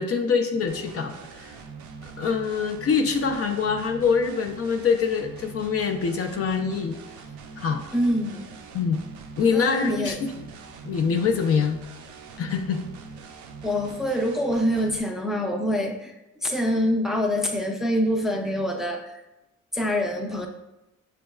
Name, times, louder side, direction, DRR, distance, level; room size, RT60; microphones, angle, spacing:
voice 1, 0.0-1.6 2.2-7.0 7.6-7.8 8.7-9.0 9.4-10.4 10.8-11.8 12.4-12.8, left 5 dB, 50° left, 5 dB, 0.5 m, -24 dB
sound 1, 0.7-15.0, right 4 dB, 75° right, 0.5 m, -42 dB
voice 2, 7.9-8.4 9.5-10.2 13.6-16.1 16.4-19.1 19.7-20.5, equal, ahead, 2 dB, 0.5 m, -25 dB
5.3 x 3.3 x 2.3 m, 0.94 s
cardioid pair, 90°, 30 cm